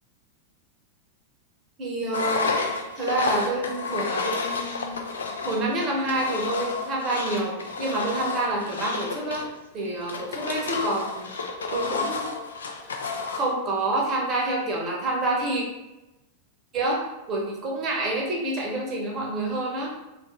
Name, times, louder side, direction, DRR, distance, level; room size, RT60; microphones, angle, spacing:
voice 1, 1.8-2.5 3.0-5.0 5.4-9.5 9.7-11.3 11.7-12.3 13.3-15.6 16.7-17.0 17.3-19.9, right 2 dB, 30° right, -2 dB, 0.8 m, -27 dB
Engine, 2.1-13.5, left 4 dB, 70° left, 0.3 m, -31 dB
2.7 x 2.4 x 3.0 m, 0.99 s
figure-of-eight pair, 90°, 0 cm